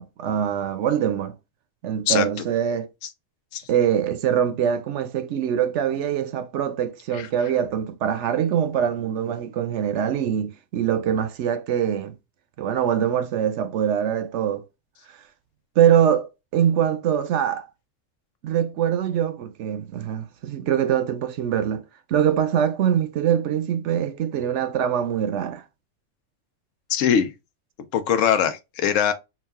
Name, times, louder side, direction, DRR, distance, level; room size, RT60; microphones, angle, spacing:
voice 1, 0.0-1.4 1.8-2.9 3.7-12.2 12.6-14.6 15.8-17.7 18.4-21.8 22.1-25.6, right 9 dB, 70° right, 0.9 m, -23 dB
voice 2, 26.9-27.3 27.9-29.1, left 8 dB, 75° left, 1.0 m, -21 dB
3.9 x 2.4 x 3.5 m
omnidirectional pair, 1.3 m